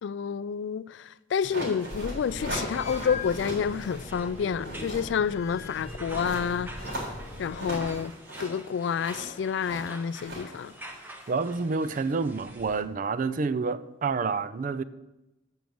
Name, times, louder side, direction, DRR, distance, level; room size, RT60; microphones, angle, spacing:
voice 1, 0.0-7.0 7.4-8.1 8.4-10.7, left 7 dB, 70° left, 0.3 m, -29 dB
sound 1, 1.4-4.1 4.4-11.5, right 1 dB, 75° right, 3.6 m, -39 dB
sound 2, 1.6-12.8, right 1 dB, 10° right, 1.0 m, -48 dB
sound 3, 1.9-8.0, left 2 dB, 40° left, 1.5 m, -40 dB
voice 2, 11.3-14.8, right 4 dB, 45° right, 0.4 m, -28 dB
6.9 x 6.1 x 7.7 m
head